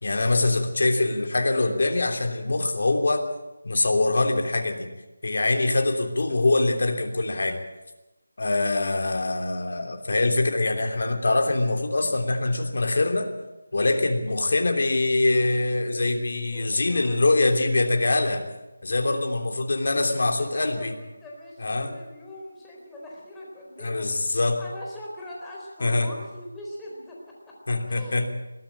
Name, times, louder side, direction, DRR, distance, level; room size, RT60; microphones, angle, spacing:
voice 1, 0.0-3.2 3.6-4.9 5.2-7.6 8.4-13.3 13.7-18.4 18.8-20.9 21.6-21.9 23.8-24.6 25.8-26.1 27.7-28.3, left 2 dB, 60° left, 4 dB, 3.2 m, -23 dB
voice 2, 16.4-17.4 19.1-19.5 20.3-28.2, left 1 dB, 5° left, -4 dB, 4.1 m, -42 dB
21.5 x 14.0 x 8.8 m, 1.0 s
figure-of-eight pair, 170°, 0 cm